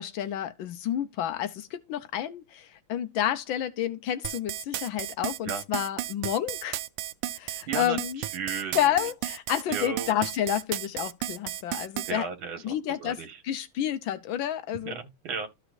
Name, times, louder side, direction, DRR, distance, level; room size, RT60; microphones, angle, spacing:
voice 1, 0.0-6.8 7.3-8.2 8.7-12.3 12.6-13.2 13.4-15.0, left 11 dB, 70° left, 1.4 m, -30 dB
sound 1, 4.2-12.1, right 14 dB, 85° right, 1.5 m, -33 dB
voice 2, 7.7-9.0 9.7-10.1 12.1-13.4 14.8-15.5, right 6 dB, 70° right, 2.3 m, -35 dB
13.5 x 5.0 x 2.5 m
omnidirectional pair, 2.4 m